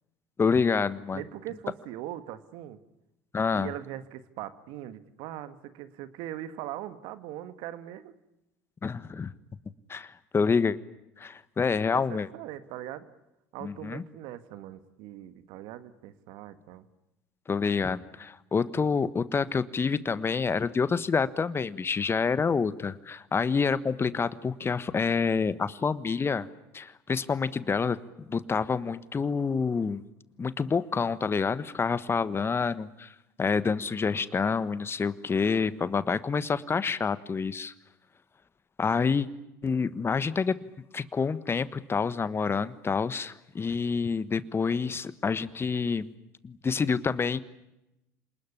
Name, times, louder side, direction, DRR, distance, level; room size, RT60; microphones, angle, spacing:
voice 1, 0.4-1.2 3.3-3.7 8.8-9.3 9.9-10.8 11.2-12.3 13.6-14.0 17.5-26.5 26.7-30.0 30.4-37.7 38.8-39.3 39.6-40.5 40.9-46.1 46.4-47.4, left 5 dB, 30° left, 15 dB, 1.4 m, -28 dB
voice 2, 1.1-2.8 3.5-8.1 11.9-13.1 13.5-16.9, right 13 dB, 70° right, 12 dB, 1.7 m, -40 dB
28.0 x 20.0 x 10.0 m, 0.91 s
hypercardioid pair, 75°, 9 cm